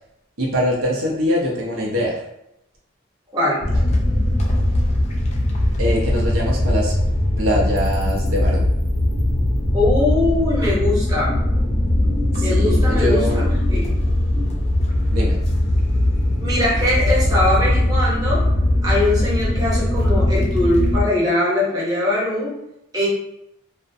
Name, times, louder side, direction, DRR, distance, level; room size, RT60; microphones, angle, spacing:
voice 1, 0.4-2.2 5.8-6.9 7.4-8.7 12.4-13.4 15.1-15.4, equal, 85° right, -3 dB, 0.6 m, -23 dB
voice 2, 3.3-3.6 9.7-11.4 12.4-13.8 16.4-18.4 18.8-22.6 22.9-23.1, left 1 dB, 20° right, -7 dB, 0.7 m, -21 dB
sound 1, 3.6-21.0, left 1 dB, 30° left, 0.4 m, -20 dB
2.4 x 2.1 x 2.6 m, 0.82 s
head